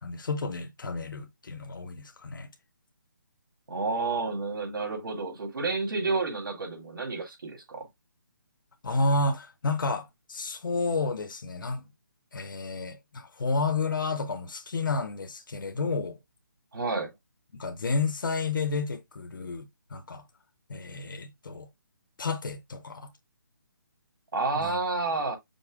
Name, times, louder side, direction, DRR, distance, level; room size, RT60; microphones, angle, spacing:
voice 1, 0.0-2.5 8.8-11.9 12.3-16.2 17.5-20.2 20.7-21.7 22.2-23.1 24.5-24.8, left 3 dB, 75° left, 0.8 m, -31 dB
voice 2, 3.7-7.8 16.7-17.1 24.3-25.4, right 3 dB, 85° right, 2.3 m, -30 dB
5.3 x 2.1 x 4.7 m
hypercardioid pair, 175°, 11 cm